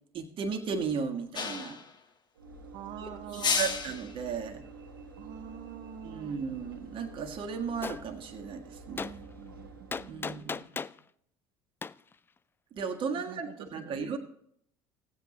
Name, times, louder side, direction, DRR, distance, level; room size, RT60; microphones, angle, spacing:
voice 1, 0.1-1.8 3.0-4.6 6.0-9.3 10.1-10.9 12.7-14.2, right 5 dB, 50° right, 4 dB, 1.6 m, -35 dB
sound 1, 1.3-1.9 3.3-4.1, left 5 dB, 40° left, 1.4 m, -31 dB
Train / Engine / Alarm, 2.3-10.6, right 3 dB, 90° right, 1.7 m, -49 dB
voice 2, 2.7-3.7 5.2-6.4 9.4-10.5 13.3-14.2, right 10 dB, 65° right, 3 dB, 0.8 m, -46 dB
Gunshot gunfire, 7.8-8.0 9.0-9.1 9.9-11.0 11.8-11.9, left 5 dB, 20° left, 0.3 m, -35 dB
15.5 x 8.2 x 3.0 m, 0.70 s
hypercardioid pair, 65°, 11 cm